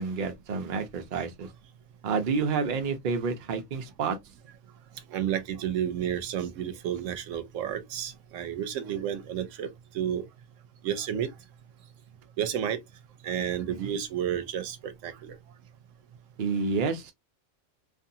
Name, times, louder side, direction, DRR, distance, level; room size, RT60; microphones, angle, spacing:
voice 1, 0.0-1.5 2.0-4.2 13.7-13.9 16.4-17.1, right 5 dB, 50° right, 0.7 m, -29 dB
voice 2, 5.1-10.2 10.8-11.3 12.4-12.8 13.2-15.4, right 9 dB, 85° right, 1.0 m, -31 dB
2.5 x 2.5 x 2.6 m
omnidirectional pair, 1.3 m